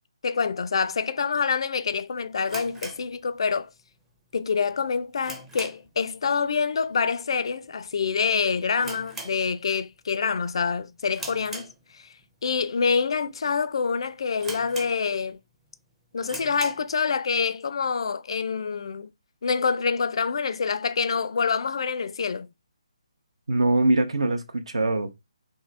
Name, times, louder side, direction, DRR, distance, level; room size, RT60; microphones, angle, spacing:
voice 1, 0.2-3.7 4.3-12.1 12.4-15.4 16.1-19.1 19.4-22.5, left 5 dB, 55° left, 0.4 m, -26 dB
sound 1, 2.4-3.8 4.1-4.2 4.7-6.0 6.3-6.6 6.9-7.0 7.7-8.0 8.2-8.3 8.8-9.9 10.3-10.6 11.1-12.2 12.8-12.9 13.5-13.6 13.8-13.9 14.4-15.4 15.7-15.8 16.2-16.9, right 2 dB, 5° right, 0.5 m, -40 dB
voice 2, 23.5-25.1, right 2 dB, 65° right, 0.7 m, -23 dB
3.7 x 2.6 x 3.2 m
figure-of-eight pair, 145°, 3 cm